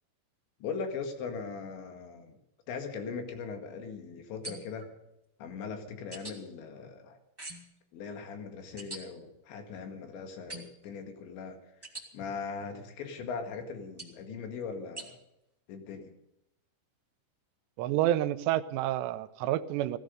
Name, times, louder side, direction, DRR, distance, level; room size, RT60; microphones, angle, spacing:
voice 1, 0.6-2.4 2.7-4.9 5.4-7.2 7.9-11.6 12.1-15.2 15.7-16.1, left 5 dB, 80° left, 5 dB, 4.2 m, -39 dB
sound 1, 4.4-4.9 6.1-6.4 7.4-7.8 8.8-9.0 10.5-10.9 11.8-12.1 14.0-14.2 15.0-15.1, right 2 dB, 15° right, 0.7 m, -43 dB
voice 2, 17.8-20.0, right 13 dB, 80° right, 12 dB, 2.9 m, -29 dB
16.0 x 15.5 x 5.2 m, 0.85 s
omnidirectional pair, 5.1 m